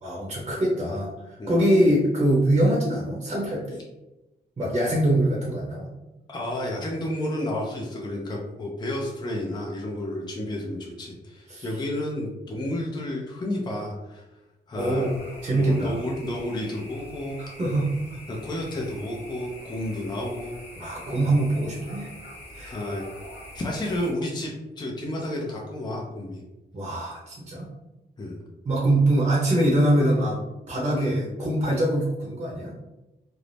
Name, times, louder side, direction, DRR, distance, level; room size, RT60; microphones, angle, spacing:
voice 1, 0.0-3.8 4.6-5.9 11.5-11.6 14.7-15.2 15.4-16.0 17.4-18.2 20.8-22.1 22.5-22.8 26.7-27.7 28.6-30.4 30.7-32.7, right 1 dB, 35° right, -4 dB, 0.7 m, -23 dB
voice 2, 6.3-14.2 14.7-15.0 15.5-17.4 18.3-20.6 22.6-23.0 23.5-26.4 26.9-27.0 28.2-28.4, left 1 dB, 25° left, -2 dB, 0.5 m, -31 dB
sound 1, 14.8-24.1, left 1 dB, 80° left, 1.0 m, -44 dB
2.6 x 2.0 x 3.2 m, 1.0 s
cardioid pair, 105°, 18 cm